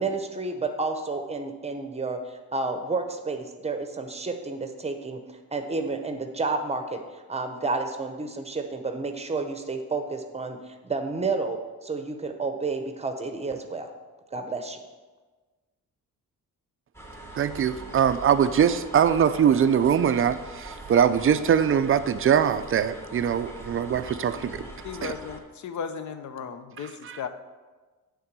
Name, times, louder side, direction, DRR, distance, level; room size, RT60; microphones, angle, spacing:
voice 1, 0.0-5.2 5.5-7.0 7.3-13.9 14.3-14.8, right 3 dB, 20° right, 6 dB, 0.8 m, -30 dB
sound 1, 16.9-25.4, right 2 dB, 5° left, 1.0 m, -42 dB
voice 2, 17.3-24.6 25.0-25.1 27.1-27.2, right 8 dB, 40° right, 12 dB, 0.4 m, -22 dB
voice 3, 24.8-27.3, left 6 dB, 55° left, 9 dB, 0.7 m, -35 dB
8.7 x 3.7 x 6.8 m, 1.3 s
cardioid pair, 125°, 34 cm